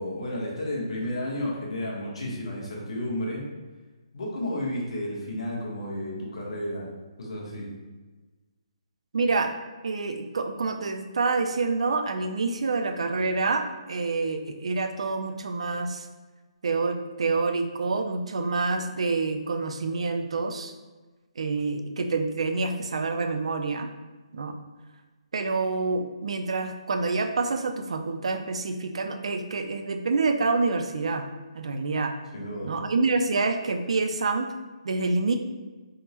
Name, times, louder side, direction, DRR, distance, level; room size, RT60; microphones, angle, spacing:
voice 1, 0.0-3.4 4.1-6.8 7.2-7.7 32.3-32.7, left 1 dB, 60° left, -4 dB, 0.9 m, -32 dB
voice 2, 9.1-9.5 9.8-16.1 16.6-20.7 21.4-23.9 24.3-24.6 25.3-31.3 31.5-32.1 32.6-34.5 34.8-35.4, right 3 dB, 65° right, 7 dB, 0.3 m, -27 dB
3.5 x 2.0 x 2.8 m, 1.3 s
hypercardioid pair, 175°, 3 cm